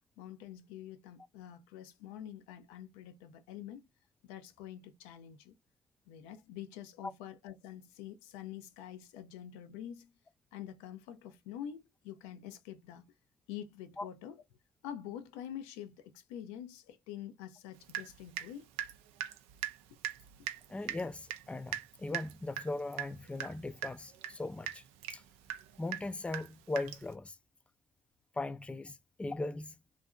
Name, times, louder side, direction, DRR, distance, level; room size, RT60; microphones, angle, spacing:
voice 1, 0.2-3.9 4.2-5.6 6.1-10.1 10.5-13.1 13.5-14.4 14.8-18.7, left 10 dB, 80° left, 0.4 m, -46 dB
Water tap faucet / Drip, 17.9-18.5 18.8-27.1, right 11 dB, 80° right, 0.4 m, -41 dB
voice 2, 20.7-24.8 25.1-25.2 25.8-27.4 28.4-29.7, left 2 dB, 10° left, 0.3 m, -39 dB
2.7 x 2.4 x 2.2 m
hypercardioid pair, 50°, 10 cm